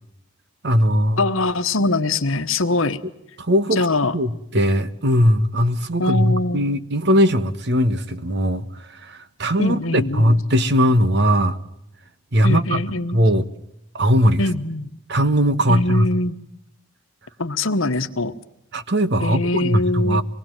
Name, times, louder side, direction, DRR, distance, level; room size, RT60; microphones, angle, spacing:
voice 1, 0.6-1.2 3.4-3.8 4.1-8.7 9.0-11.6 12.3-12.8 13.1-13.5 13.9-14.4 15.1-16.1 18.7-20.2, equal, 55° right, 13 dB, 1.3 m, -19 dB
voice 2, 1.2-3.0 3.7-4.2 6.0-6.7 9.6-10.4 12.4-13.2 14.4-14.9 15.7-16.4 17.4-18.3 19.2-20.2, left 2 dB, 70° left, 11 dB, 1.3 m, -22 dB
26.0 x 20.0 x 9.0 m, 0.80 s
head